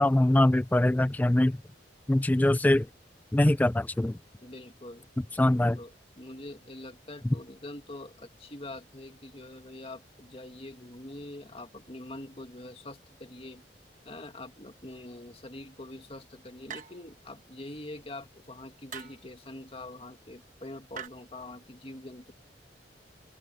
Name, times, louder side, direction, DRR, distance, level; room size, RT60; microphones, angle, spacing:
voice 1, 0.0-1.6 2.1-2.9 3.3-4.2 5.4-5.8, left 1 dB, 10° left, 0.3 m, -23 dB
voice 2, 4.4-5.1 5.8-13.6 14.1-22.3, left 1 dB, 35° left, 2.0 m, -44 dB
Fighting with shovels, 16.7-17.2 18.9-19.3 20.9-21.1, right 7 dB, 45° right, 1.3 m, -42 dB
open air
head